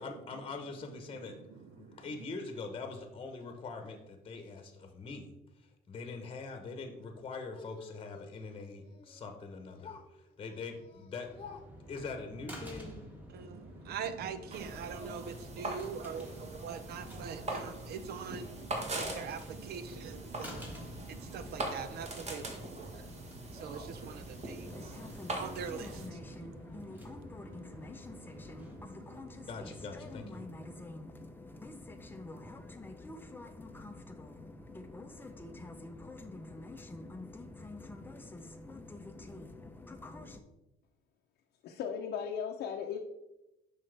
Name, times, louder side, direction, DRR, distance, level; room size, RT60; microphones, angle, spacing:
voice 1, 0.0-1.4 1.7-13.0 29.5-30.4, left 4 dB, 30° left, 6 dB, 1.0 m, -43 dB
voice 2, 1.3-2.3 13.3-29.5 30.4-30.9, right 6 dB, 70° right, 11 dB, 0.7 m, -44 dB
sound 1, 11.2-28.8, equal, 10° right, 1.7 m, -51 dB
sound 2, 14.5-26.1, right 2 dB, 40° right, 1.4 m, -42 dB
sound 3, 24.6-40.4, left 2 dB, 10° left, 0.6 m, -47 dB
voice 3, 41.6-43.0, left 7 dB, 70° left, 1 dB, 0.7 m, -36 dB
7.5 x 5.5 x 3.4 m, 0.94 s
cardioid pair, 110°, 17 cm